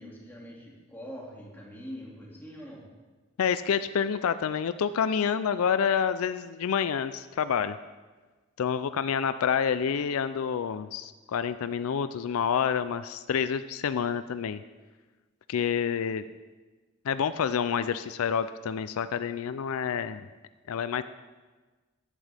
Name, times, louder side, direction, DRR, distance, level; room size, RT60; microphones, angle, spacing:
voice 1, 0.0-2.9, equal, 10° left, -3 dB, 2.2 m, -43 dB
voice 2, 3.4-7.8 8.6-14.6 15.5-16.2 17.1-20.3 20.7-21.0, left 7 dB, 75° left, 12 dB, 0.4 m, -28 dB
14.5 x 11.0 x 3.4 m, 1.3 s
head